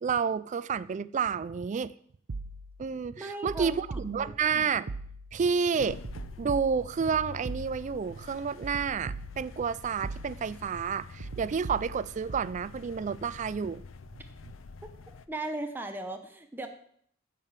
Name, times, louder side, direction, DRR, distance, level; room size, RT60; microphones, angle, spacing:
voice 1, 0.0-1.9 2.8-4.9 5.3-6.0 6.4-13.8, right 6 dB, 35° right, 0.3 m, -30 dB
sound 1, 2.3-2.9 3.5-4.5 4.9-5.5 6.0-8.1 8.6-9.7 10.0-10.7 11.2-12.6, right 3 dB, 75° right, 0.7 m, -41 dB
voice 2, 3.2-4.4 15.1-16.7, right 2 dB, 10° right, 0.8 m, -38 dB
sound 2, 5.8-15.3, left 4 dB, 75° left, 0.5 m, -47 dB
10.0 x 4.9 x 7.3 m
head